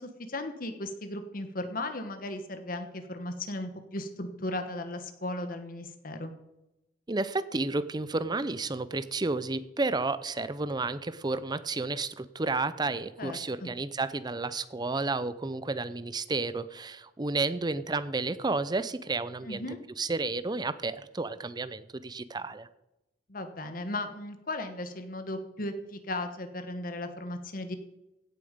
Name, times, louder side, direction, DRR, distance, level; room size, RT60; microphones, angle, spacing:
voice 1, 0.0-6.3 13.2-13.7 19.4-19.8 23.3-27.8, left 1 dB, 55° left, 7 dB, 1.4 m, -36 dB
voice 2, 7.1-19.6 20.0-22.7, right 3 dB, 25° right, 14 dB, 0.6 m, -31 dB
16.5 x 7.3 x 5.2 m, 0.92 s
head